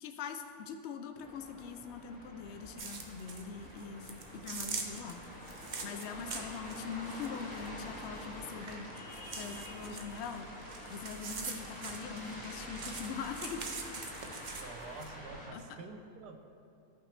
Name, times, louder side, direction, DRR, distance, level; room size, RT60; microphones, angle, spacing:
voice 1, 0.0-5.2 5.8-8.9 9.4-10.5 10.9-13.6 14.0-14.1 15.5-15.8, left 6 dB, 80° left, 7 dB, 0.6 m, -42 dB
sound 1, 1.2-15.5, equal, 5° left, 1.8 m, -47 dB
sound 2, 2.8-3.4 3.8-8.7 9.0-12.4 12.8-15.1, right 4 dB, 65° right, 0.4 m, -43 dB
sound 3, 8.5-13.9, right 3 dB, 50° right, 0.9 m, -58 dB
voice 2, 14.5-16.4, right 4 dB, 85° right, 6 dB, 1.3 m, -48 dB
13.5 x 5.8 x 3.2 m, 2.7 s
omnidirectional pair, 1.7 m